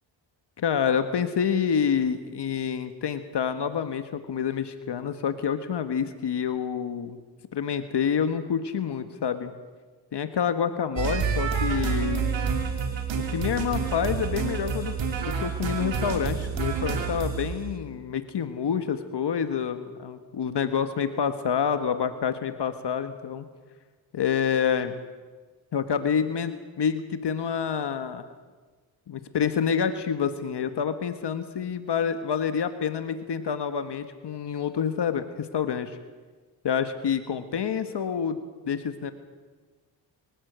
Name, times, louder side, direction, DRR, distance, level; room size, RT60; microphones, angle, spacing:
voice 1, 0.6-7.2 7.5-9.5 10.1-12.2 13.1-14.9 15.2-23.4 24.1-25.0 25.7-28.3 29.1-36.0 36.6-39.1, left 7 dB, 65° left, 9 dB, 1.5 m, -28 dB
sound 1, 11.0-17.6, right 6 dB, 80° right, 3.3 m, -28 dB
24.5 x 15.5 x 8.1 m, 1.4 s
cardioid pair, 60°, 44 cm